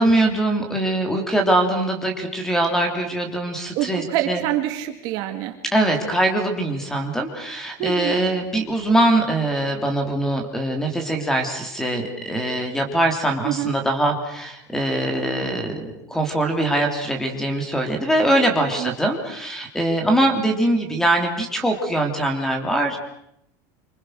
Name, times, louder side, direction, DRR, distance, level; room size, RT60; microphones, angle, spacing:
voice 1, 0.0-4.4 5.7-23.0, right 1 dB, 5° left, 5 dB, 3.2 m, -22 dB
voice 2, 3.8-5.6 7.8-8.2 13.4-13.7 18.8-18.9, right 13 dB, 45° right, 6 dB, 2.2 m, -26 dB
27.0 x 25.5 x 6.5 m, 0.76 s
supercardioid pair, 175°, 10 cm